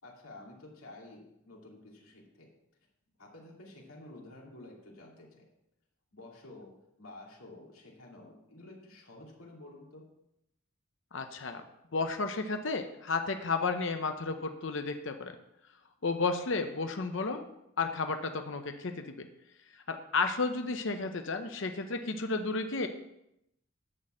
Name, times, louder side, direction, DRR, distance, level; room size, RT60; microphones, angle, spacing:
voice 1, 0.0-2.5 3.2-5.5 6.1-10.0, left 2 dB, 90° left, -2 dB, 2.8 m, -51 dB
voice 2, 11.1-11.6 11.9-15.4 16.0-17.5 17.8-19.3 19.7-22.9, left 4 dB, 60° left, 6 dB, 0.7 m, -32 dB
11.0 x 4.2 x 7.8 m, 0.82 s
head